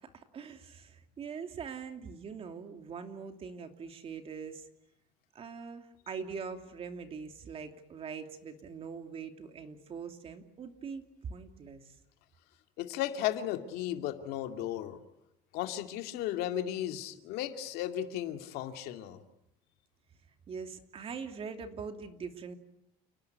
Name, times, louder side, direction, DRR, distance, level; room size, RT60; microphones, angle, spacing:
voice 1, 0.0-4.7 5.3-11.0 11.3-12.0 20.5-22.6, right 5 dB, 35° right, 6 dB, 2.8 m, -42 dB
voice 2, 12.8-15.0 15.5-19.2, left 12 dB, 75° left, 6 dB, 2.5 m, -35 dB
29.5 x 18.5 x 9.5 m, 0.83 s
cardioid pair, 130°, 16 cm